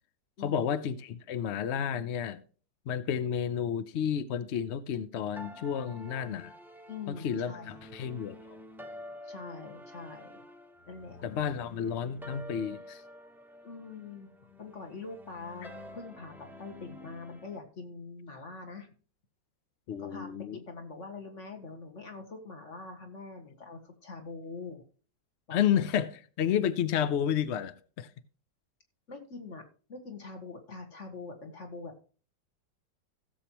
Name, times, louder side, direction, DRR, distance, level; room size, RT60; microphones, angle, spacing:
voice 1, 0.4-2.4 2.9-6.5 7.1-8.6 11.2-13.0 19.9-20.6 25.5-28.1, left 8 dB, 70° left, 0.6 m, -31 dB
sound 1, 5.4-17.6, left 1 dB, ahead, 0.6 m, -49 dB
voice 2, 6.9-7.8 9.2-10.4 10.9-11.2 11.5-11.6 13.6-14.3 14.6-18.9 20.0-24.8 25.5-25.6 29.1-32.0, left 4 dB, 40° left, 2.0 m, -44 dB
16.5 x 7.3 x 3.0 m
omnidirectional pair, 1.9 m